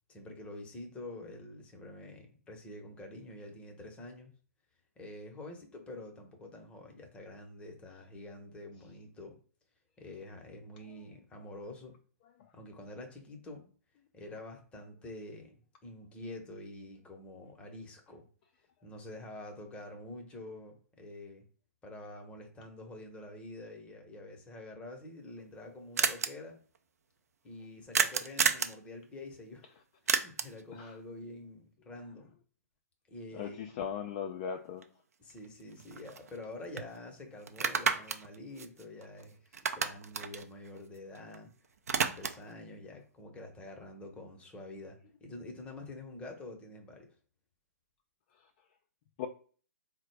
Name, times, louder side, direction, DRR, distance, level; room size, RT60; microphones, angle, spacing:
voice 1, 0.1-4.3 5.0-9.4 10.0-11.9 12.5-13.7 14.1-15.5 15.8-18.2 18.8-21.4 21.8-26.6 27.4-29.7 30.0-32.4 33.1-33.6 35.2-41.5 41.9-47.1, left 2 dB, 15° left, 3 dB, 0.8 m, -47 dB
sound 1, 25.0-25.1 25.3-25.4 25.6-25.7 26.0-26.3 27.9-28.8 30.1-30.6 34.8-34.9 35.3-36.5 36.8-36.9 37.5-39.2 39.5-41.4 41.6-42.5, right 6 dB, 70° right, 0.4 m, -31 dB
voice 2, 33.3-34.8 49.2-49.3, left 7 dB, 35° left, 5 dB, 0.3 m, -37 dB
3.9 x 2.1 x 3.2 m, 0.42 s
figure-of-eight pair, 125°, 9 cm